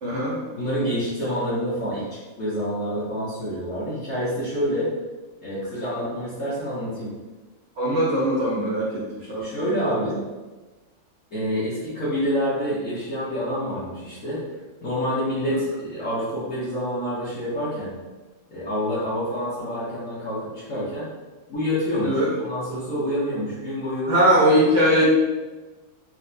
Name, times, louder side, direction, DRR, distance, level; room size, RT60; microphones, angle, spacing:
voice 1, 0.0-0.4 7.8-10.1 22.0-22.3 24.1-25.1, equal, 70° right, -6 dB, 0.6 m, -21 dB
voice 2, 0.5-4.9 5.4-7.1 9.4-10.2 11.3-14.4 14.8-17.9 18.5-21.1 21.5-24.1, equal, 50° left, -12 dB, 1.0 m, -27 dB
4.3 x 2.2 x 2.6 m, 1.2 s
omnidirectional pair, 2.1 m